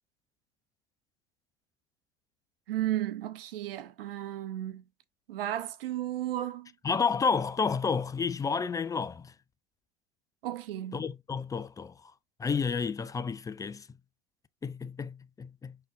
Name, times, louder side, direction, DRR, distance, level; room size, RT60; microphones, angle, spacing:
voice 1, 2.7-4.8 5.3-6.7 10.4-11.0, right 13 dB, 75° right, 0.7 m, -34 dB
voice 2, 6.8-9.3 10.9-12.1 12.4-13.9 14.6-15.8, left 5 dB, 10° left, 0.3 m, -31 dB
5.3 x 3.7 x 2.6 m
hypercardioid pair, 80°, 29 cm